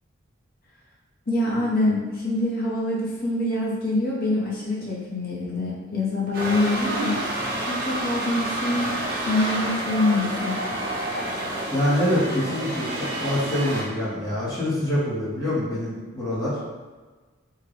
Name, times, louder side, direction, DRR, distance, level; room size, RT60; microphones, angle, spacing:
voice 1, 1.3-7.2 7.7-8.9 9.3-10.6, left 2 dB, 45° left, -5 dB, 0.8 m, -25 dB
sound 1, 6.3-13.8, right 1 dB, 45° right, 0.8 m, -29 dB
voice 2, 11.7-16.6, left 1 dB, 15° left, -9 dB, 0.7 m, -25 dB
3.7 x 2.2 x 3.2 m, 1.3 s
head